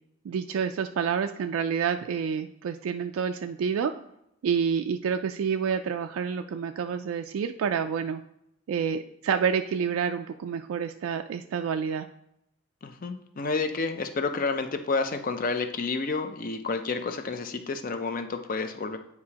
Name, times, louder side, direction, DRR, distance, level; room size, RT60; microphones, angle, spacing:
voice 1, 0.2-3.9 4.4-8.2 8.7-12.1, right 7 dB, 85° right, 6 dB, 0.3 m, -28 dB
voice 2, 12.8-19.0, left 4 dB, 40° left, 8 dB, 0.5 m, -30 dB
9.5 x 4.8 x 2.8 m, 0.79 s
head